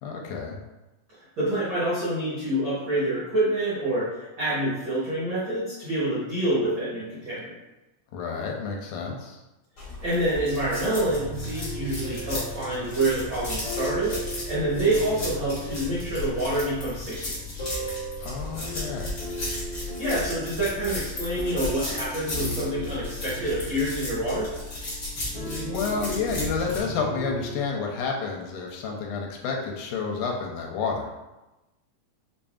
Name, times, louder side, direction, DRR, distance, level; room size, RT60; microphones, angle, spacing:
voice 1, 0.0-0.6 8.1-9.4 18.2-19.2 25.3-31.1, left 5 dB, 85° left, 0 dB, 2.1 m, -30 dB
voice 2, 1.4-4.1 4.4-7.6 10.0-14.2 14.5-17.4 19.8-24.5, right 1 dB, 80° right, -9 dB, 1.1 m, -27 dB
sound 1, 9.8-26.8, left 2 dB, 60° left, 0.8 m, -35 dB
sound 2, 11.0-27.6, right 1 dB, 40° left, 1.3 m, -38 dB
5.4 x 2.6 x 2.3 m, 1.0 s
omnidirectional pair, 3.7 m